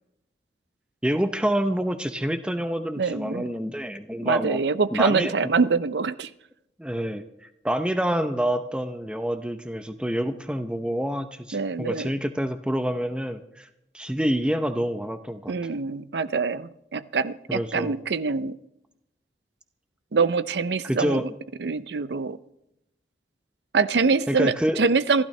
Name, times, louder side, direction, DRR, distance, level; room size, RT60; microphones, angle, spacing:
voice 1, 1.0-4.6 4.9-5.5 6.8-7.2 7.6-13.7 13.9-15.5 17.5-18.0 20.8-21.3 24.3-24.8, equal, 5° right, 8 dB, 0.7 m, -27 dB
voice 2, 3.0-3.5 4.2-6.3 11.5-12.1 15.5-18.6 20.1-21.2 21.6-22.4 23.7-25.2, right 4 dB, 80° right, 15 dB, 0.6 m, -24 dB
27.0 x 12.0 x 3.3 m, 0.85 s
head